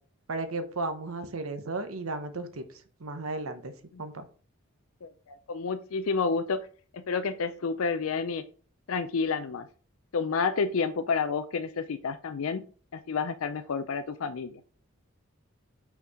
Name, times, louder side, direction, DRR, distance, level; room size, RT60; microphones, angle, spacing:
voice 1, 0.3-2.6 3.0-3.7 4.0-4.2, right 3 dB, 90° right, 9 dB, 1.0 m, -34 dB
voice 2, 5.0-6.7 6.9-8.4 8.9-9.7 10.1-12.6 12.9-14.6, left 5 dB, 80° left, 10 dB, 0.5 m, -30 dB
5.7 x 4.5 x 4.9 m, 0.41 s
head